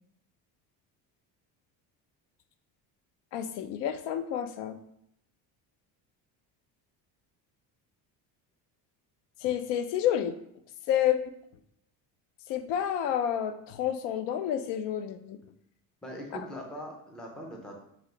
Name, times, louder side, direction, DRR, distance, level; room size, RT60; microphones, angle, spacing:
voice 1, 3.3-4.8 9.4-10.3 10.9-11.2 12.5-15.4, left 10 dB, 85° left, 10 dB, 0.5 m, -29 dB
voice 2, 16.0-17.8, equal, ahead, 0 dB, 0.4 m, -41 dB
3.2 x 2.9 x 3.7 m, 0.74 s
cardioid pair, 155°, 41 cm